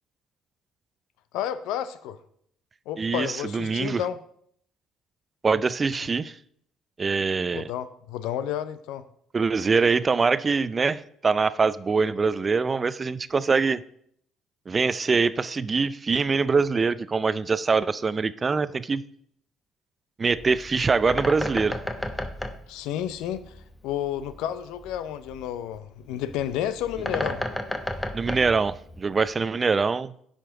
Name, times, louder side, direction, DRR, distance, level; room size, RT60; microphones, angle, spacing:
voice 1, 1.3-2.2 2.9-4.2 7.5-9.0 22.7-27.4, left 10 dB, 75° left, 0.5 m, -31 dB
voice 2, 3.0-4.0 5.4-6.3 7.0-7.7 9.3-13.8 14.7-19.0 20.2-21.8 28.1-30.1, right 4 dB, 35° right, 0.4 m, -24 dB
Bird, 20.2-29.4, left 1 dB, 10° left, 0.9 m, -34 dB
10.0 x 5.1 x 3.8 m
hypercardioid pair, 60°, 0 cm